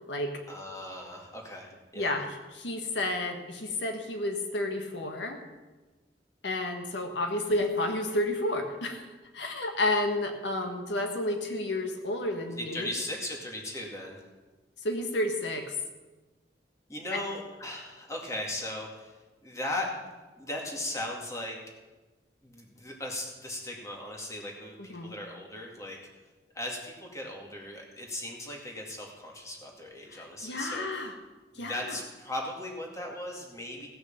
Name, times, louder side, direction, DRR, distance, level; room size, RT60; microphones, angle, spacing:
voice 1, 0.5-2.1 12.6-14.2 16.9-19.2 19.4-19.9 20.4-21.6 22.4-26.0 26.5-30.9 31.5-33.9, left 1 dB, 20° left, -1 dB, 2.3 m, -37 dB
voice 2, 2.0-2.3 2.5-5.4 6.4-9.0 9.3-12.9 14.8-15.7 17.1-17.2 24.9-25.2 30.1-31.1 31.6-31.9, left 1 dB, 85° left, 4 dB, 1.5 m, -31 dB
17.0 x 6.6 x 7.1 m, 1.2 s
head